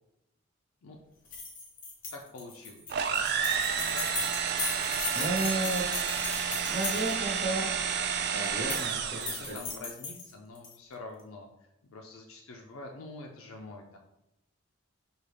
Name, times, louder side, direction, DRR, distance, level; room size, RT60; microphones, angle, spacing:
sound 1, 1.3-7.4 8.4-8.9 9.2-10.7, left 4 dB, 40° left, 0.8 m, -37 dB
voice 1, 2.1-3.3 3.7-4.3 9.2-11.5 11.9-14.0, left 2 dB, 65° left, 0 dB, 0.5 m, -46 dB
sound 2, 2.9-9.6, right 7 dB, 50° right, 0.3 m, -30 dB
voice 2, 5.1-5.9 6.7-7.7 8.3-9.6, right 2 dB, 20° right, -7 dB, 1.1 m, -33 dB
5.2 x 2.3 x 3.3 m, 0.86 s
head